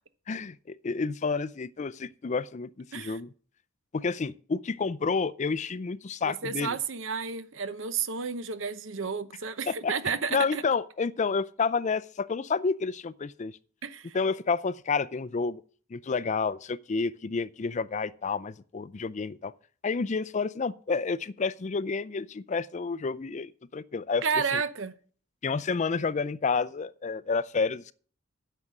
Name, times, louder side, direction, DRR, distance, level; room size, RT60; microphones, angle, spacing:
voice 1, 0.3-3.3 3.9-6.8 9.7-9.9 10.3-13.6 14.1-15.6 15.9-19.5 19.8-24.2 24.5-24.6 25.4-27.9, left 4 dB, 35° left, 0.4 m, -30 dB
voice 2, 6.3-10.6 13.8-14.2 24.2-24.9, right 5 dB, 65° right, 0.8 m, -31 dB
9.6 x 6.7 x 7.4 m
head